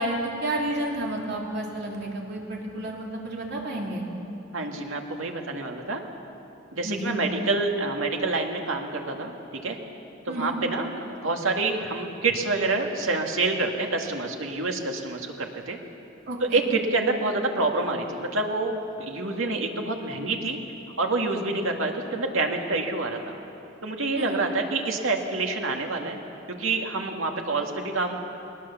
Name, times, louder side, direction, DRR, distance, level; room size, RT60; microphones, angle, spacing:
voice 1, 0.0-4.0 6.8-7.2 10.3-10.5 16.3-16.6 24.1-24.4, right 1 dB, 55° right, -1 dB, 3.2 m, -31 dB
voice 2, 4.5-6.0 6.7-9.8 10.3-15.8 16.4-20.6 21.0-23.4 23.8-26.2 26.5-28.2, right 3 dB, 80° right, 2 dB, 2.1 m, -27 dB
21.5 x 19.5 x 7.1 m, 2.9 s
head